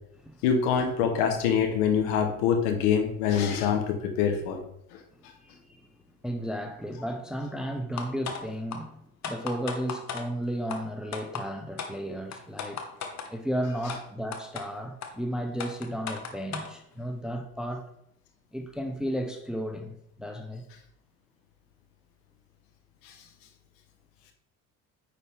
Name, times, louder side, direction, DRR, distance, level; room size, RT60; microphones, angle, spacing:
voice 1, 0.4-4.6, left 7 dB, 60° left, 1.5 m, -25 dB
voice 2, 5.4-5.9 6.2-12.8 13.3-17.9 18.5-20.6, equal, ahead, 0.7 m, -34 dB
sound 1, 8.0-8.4 8.7-8.8 9.2-10.2 10.7-10.8 11.1-11.4 11.8-11.9 12.3-13.3 13.9-14.0 14.3-14.6 15.0-15.1 15.6-16.7, left 6 dB, 40° left, 1.3 m, -35 dB
9.4 x 4.7 x 3.7 m
figure-of-eight pair, 60°, 43 cm